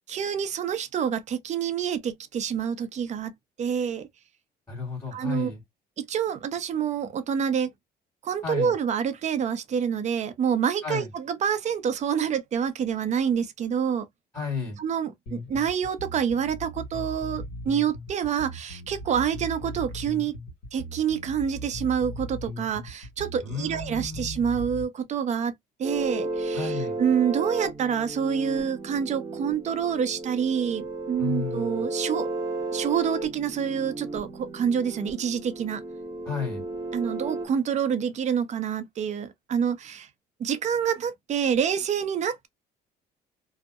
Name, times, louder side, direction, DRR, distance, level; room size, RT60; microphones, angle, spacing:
voice 1, 0.1-3.3 3.6-4.1 5.1-5.5 6.0-7.7 8.2-14.1 14.8-20.3 20.7-25.5 25.8-32.3 32.7-35.8 36.9-40.1 40.4-42.5, right 8 dB, 45° right, 0.5 m, -27 dB
voice 2, 4.7-5.6 8.4-8.7 10.8-11.1 14.3-14.8 23.4-24.4 26.5-27.0 31.2-31.8 36.2-36.6, left 5 dB, 20° left, 1.6 m, -32 dB
sound 1, 15.3-24.9, equal, 65° left, 1.4 m, -38 dB
sound 2, 25.8-37.5, right 2 dB, 20° right, 0.8 m, -34 dB
2.7 x 2.0 x 2.2 m
cardioid pair, 110°, 17 cm